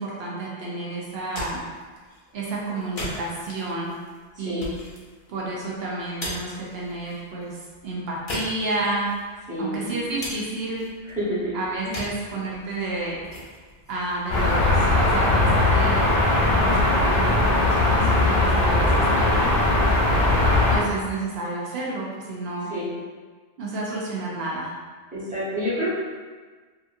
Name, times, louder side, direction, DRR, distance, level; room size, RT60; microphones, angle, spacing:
voice 1, 0.0-1.6 2.3-3.9 4.4-4.7 5.3-7.6 7.8-9.1 9.6-10.8 11.5-13.2 13.9-16.2 16.5-19.5 20.7-22.7 23.6-24.7, right 2 dB, 80° right, -4 dB, 0.9 m, -30 dB
sound 1, 1.1-15.0, left 1 dB, 40° left, 0.6 m, -40 dB
voice 2, 9.5-9.9 11.1-11.5 11.9-12.0 22.7-22.9 25.1-25.9, equal, 10° right, -11 dB, 0.9 m, -28 dB
sound 2, 14.3-20.8, left 2 dB, 80° left, 0.9 m, -19 dB
2.8 x 2.4 x 2.5 m, 1.4 s
omnidirectional pair, 1.0 m